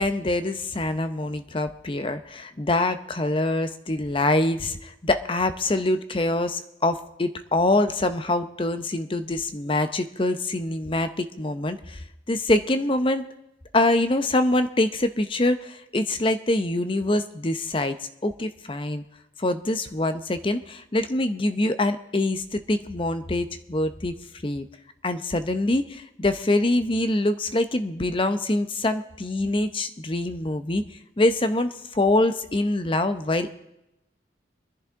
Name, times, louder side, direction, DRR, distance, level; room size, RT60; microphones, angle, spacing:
voice 1, 0.0-12.0 12.3-13.3 13.7-18.0 18.2-19.0 19.4-24.1 24.4-24.7 25.0-30.8 31.2-33.6, left 2 dB, 30° left, 10 dB, 0.7 m, -24 dB
24.0 x 10.5 x 3.6 m, 0.87 s
head